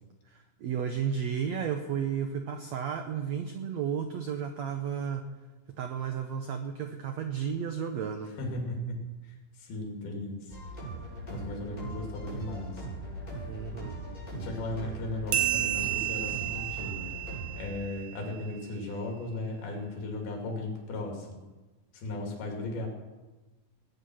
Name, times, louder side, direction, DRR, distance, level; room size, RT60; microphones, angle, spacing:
voice 1, 0.3-5.2 5.8-8.3 13.5-14.0, right 7 dB, 85° right, 6 dB, 1.5 m, -33 dB
voice 2, 8.4-10.6 11.3-12.9 14.3-17.1 17.6-21.4 21.9-22.9, left 2 dB, 80° left, 1 dB, 4.5 m, -36 dB
sound 1, 10.5-17.6, right 1 dB, 10° left, 6.0 m, -40 dB
sound 2, 15.3-18.4, right 14 dB, 65° right, 2.1 m, -32 dB
19.0 x 9.5 x 6.3 m, 1.2 s
omnidirectional pair, 4.3 m